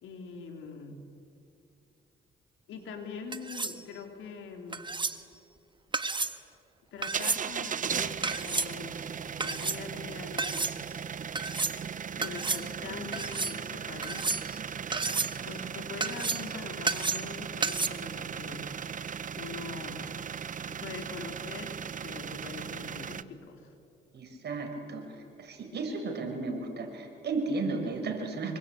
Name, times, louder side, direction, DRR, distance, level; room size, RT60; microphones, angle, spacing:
voice 1, 0.0-1.0 2.7-4.8 6.9-9.0 9.4-10.8 12.2-14.4 15.4-18.7 19.4-20.0 20.7-21.8 22.0-23.7, left 4 dB, 80° left, 4 dB, 4.0 m, -43 dB
sound 1, 3.3-3.8 4.7-5.2 5.9-6.4 7.0-7.4 8.2-8.7 9.4-9.8 10.4-10.7 11.3-11.8 12.2-12.6 13.1-13.5 14.0-14.6 14.9-15.4 16.0-16.5 16.9-17.3 17.6-17.9, right 4 dB, 25° right, 1.4 m, -31 dB
sound 2, 7.0-23.2, right 7 dB, 40° right, 0.9 m, -37 dB
voice 2, 24.1-28.6, right 3 dB, 55° right, 4 dB, 5.5 m, -34 dB
26.5 x 24.0 x 8.8 m, 2.6 s
cardioid pair, 90°, 20 cm